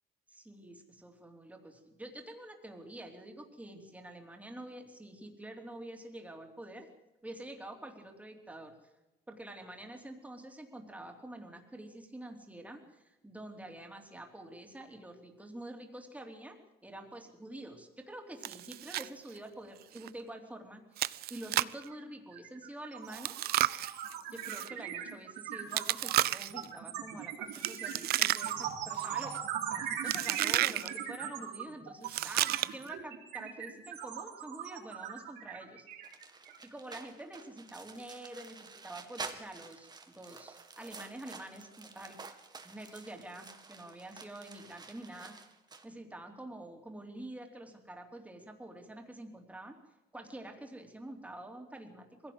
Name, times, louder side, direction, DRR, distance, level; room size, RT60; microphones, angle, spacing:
voice 1, 0.3-6.9 7.2-8.7 9.3-23.5 24.3-35.9 36.6-42.2 42.6-45.3 45.8-49.8 50.1-52.3, right 1 dB, 10° right, 3 dB, 3.4 m, -47 dB
Chewing mastication, 18.4-19.1 19.4-19.5 20.0-20.1 21.0-21.8 23.1-24.7 25.7-26.6 27.5-28.7 29.0-29.4 30.1-30.9 32.0-32.9, right 14 dB, 65° right, 0.6 m, -32 dB
sound 1, 21.9-22.0 22.3-36.7, right 9 dB, 90° right, 3.7 m, -40 dB
sound 2, 36.0-45.8, right 4 dB, 25° right, 2.1 m, -49 dB
21.5 x 16.0 x 8.0 m, 1.0 s
cardioid pair, 110°, 17 cm